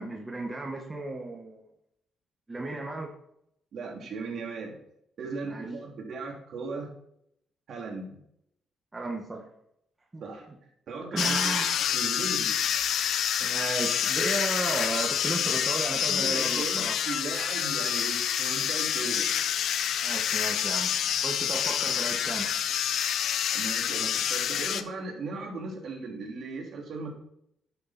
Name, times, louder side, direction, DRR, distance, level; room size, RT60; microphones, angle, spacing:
voice 1, 0.0-1.6 2.5-3.1 5.5-5.7 8.9-9.5 10.1-10.2 11.1-11.8 13.4-17.0 20.0-20.9 21.2-22.5, right 2 dB, 20° right, 1 dB, 1.6 m, -34 dB
voice 2, 3.7-4.8 5.2-6.9 7.7-8.1 10.2-10.5 10.9-12.5 16.0-19.3 23.5-27.1, right 3 dB, 60° right, 0 dB, 2.8 m, -37 dB
sound 1, 11.2-24.8, left 9 dB, 70° left, 0.6 m, -27 dB
9.9 x 6.8 x 4.3 m, 0.74 s
cardioid pair, 90°, 0 cm